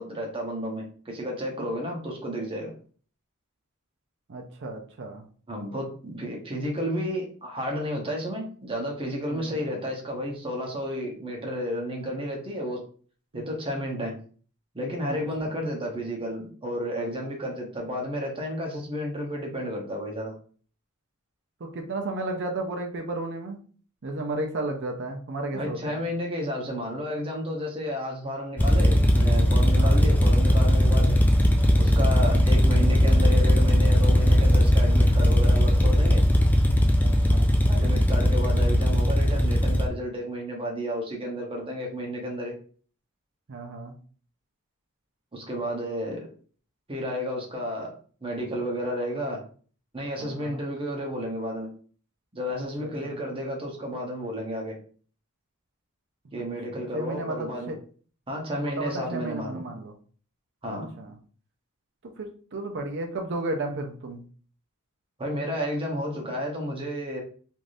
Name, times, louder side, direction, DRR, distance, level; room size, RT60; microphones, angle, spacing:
voice 1, 0.0-2.7 5.5-12.8 13.3-14.2 14.7-20.3 25.5-31.1 31.8-36.2 37.7-42.5 45.3-46.3 46.9-47.9 48.2-49.4 49.9-51.7 52.3-54.8 56.3-57.7 58.3-59.6 60.6-60.9 65.2-67.2, equal, 25° right, 0 dB, 0.9 m, -32 dB
voice 2, 4.3-5.3 9.3-9.5 13.3-13.5 15.0-15.5 21.6-23.6 24.0-26.0 29.7-30.0 32.3-32.6 37.0-37.5 43.5-43.9 50.2-50.6 52.6-53.1 56.4-56.5 56.7-57.8 58.6-59.9 60.7-61.2 62.2-64.2, right 2 dB, 55° right, 3 dB, 0.6 m, -34 dB
sound 1, 28.6-39.9, equal, 10° left, 0.3 m, -19 dB
3.3 x 2.6 x 2.6 m, 0.42 s
head